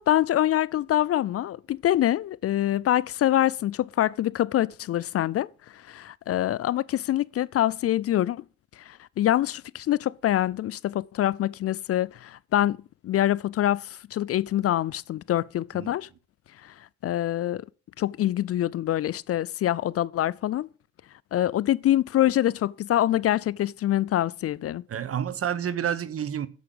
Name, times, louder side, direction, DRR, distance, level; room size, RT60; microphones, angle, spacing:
voice 1, 0.0-5.5 5.9-8.4 8.9-12.8 13.0-16.1 16.6-16.7 17.0-17.6 18.0-20.7 21.3-24.8, left 13 dB, 50° left, 0.4 m, -25 dB
voice 2, 24.9-26.5, right 9 dB, 50° right, 1.0 m, -29 dB
8.3 x 7.0 x 7.7 m
cardioid pair, 90°, 30 cm